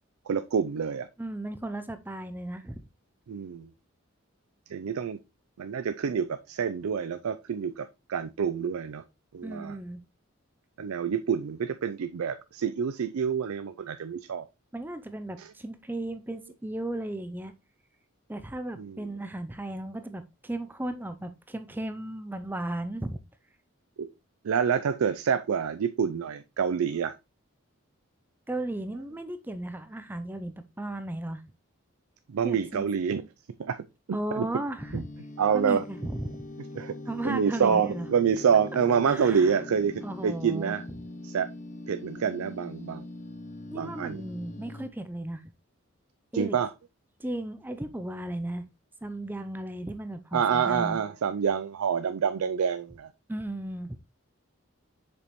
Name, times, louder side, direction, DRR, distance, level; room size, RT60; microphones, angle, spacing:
voice 1, 0.3-1.1 3.3-3.7 4.7-5.2 5.6-9.0 9.3-9.8 10.8-14.5 18.8-19.0 24.0-24.1 24.4-27.1 32.3-33.2 33.6-33.8 34.3-34.5 34.9-35.0 35.4-35.8 36.8-36.9 37.2-40.8 41.2-41.5 41.9-43.1 43.7-44.2 46.3-46.7 50.3-53.1, right 7 dB, 90° right, 0.4 m, -27 dB
voice 2, 1.2-2.8 9.4-10.0 14.7-17.5 18.3-23.2 28.5-31.4 32.4-32.9 34.1-35.1 35.5-36.4 37.0-38.1 39.1-39.6 40.0-40.8 43.7-45.4 46.3-46.6 47.2-48.7 49.0-51.0 53.3-54.0, right 1 dB, 10° right, 0.4 m, -35 dB
sound 1, 34.8-44.9, left 2 dB, 35° left, 0.6 m, -42 dB
6.8 x 5.2 x 3.0 m
head